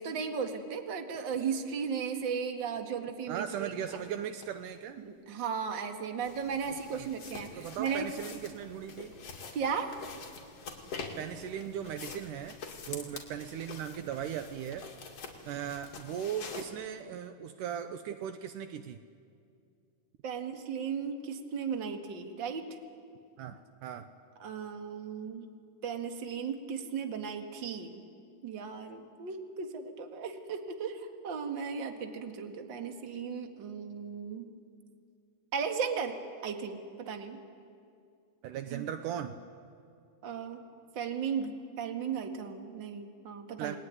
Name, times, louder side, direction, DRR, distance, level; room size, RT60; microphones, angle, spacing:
voice 1, 0.0-4.0 5.0-8.1 9.5-10.0 20.2-22.8 24.4-25.5 25.8-28.0 28.4-34.5 35.5-37.4 38.7-38.8 40.2-40.7 41.0-43.8, right 6 dB, 40° right, 5 dB, 2.0 m, -36 dB
voice 2, 3.3-5.0 6.9-7.1 7.6-9.2 11.2-12.6 12.9-14.9 15.5-19.0 23.4-24.1 38.4-39.4 43.6-43.8, right 9 dB, 75° right, 9 dB, 2.2 m, -38 dB
sound 1, 3.8-3.9 4.4-4.5 6.2-16.6, left 4 dB, 50° left, 3.3 m, -46 dB
29.5 x 20.0 x 9.7 m, 2.4 s
omnidirectional pair, 3.9 m